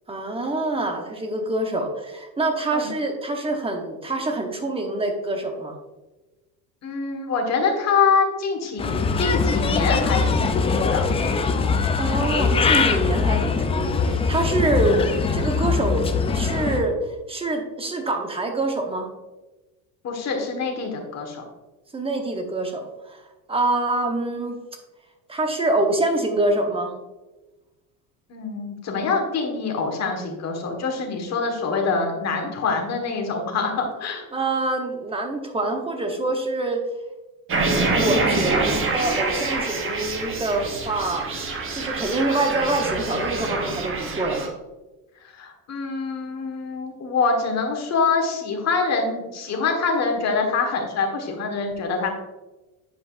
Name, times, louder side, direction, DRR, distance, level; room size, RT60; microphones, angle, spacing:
voice 1, 0.1-5.8 12.0-15.0 15.3-17.0 17.3-19.1 21.9-23.2 23.5-24.6 25.3-26.9 34.3-36.8 37.9-41.4 41.7-44.5, right 2 dB, 15° right, 4 dB, 0.9 m, -25 dB
voice 2, 6.8-11.0 20.0-21.4 28.3-34.2 45.4-52.1, left 4 dB, 40° left, 2 dB, 1.5 m, -25 dB
Bird, 8.8-16.8, left 5 dB, 15° left, 0.3 m, -22 dB
sound 1, 37.5-44.5, right 3 dB, 30° right, 1.0 m, -26 dB
8.4 x 5.1 x 2.5 m, 1.1 s
supercardioid pair, 120°, 42 cm